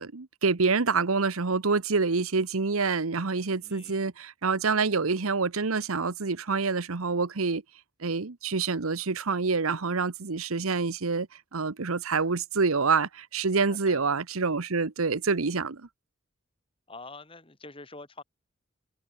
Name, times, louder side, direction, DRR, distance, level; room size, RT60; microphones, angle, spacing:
voice 1, 0.0-7.6 8.0-11.3 11.5-15.8, right 4 dB, 85° right, 1.1 m, -27 dB
voice 2, 3.6-4.1 13.7-14.0 16.9-18.2, left 3 dB, 25° left, 3.4 m, -46 dB
head